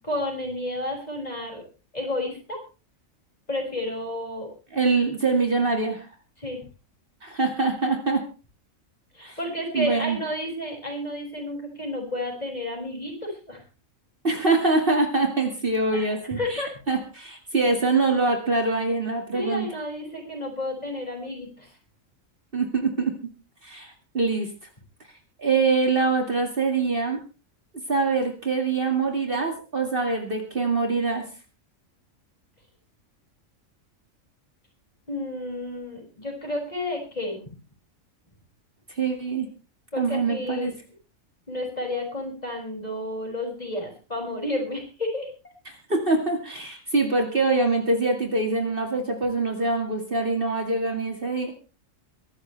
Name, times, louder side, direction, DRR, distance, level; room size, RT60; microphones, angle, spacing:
voice 1, 0.0-1.6 1.9-2.6 3.5-4.5 6.4-6.6 9.1-13.6 15.9-16.7 19.3-21.7 35.1-37.4 39.9-40.7 41.5-45.3, left 1 dB, 30° left, 1 dB, 6.5 m, -31 dB
voice 2, 4.7-6.1 7.2-8.2 9.2-9.4 9.7-10.2 14.2-19.7 22.5-23.1 23.6-24.5 25.4-27.2 27.9-31.2 38.9-39.5 40.0-40.7 45.7-51.5, right 3 dB, 40° right, 3 dB, 2.4 m, -24 dB
23.0 x 13.0 x 3.4 m, 0.34 s
omnidirectional pair, 1.4 m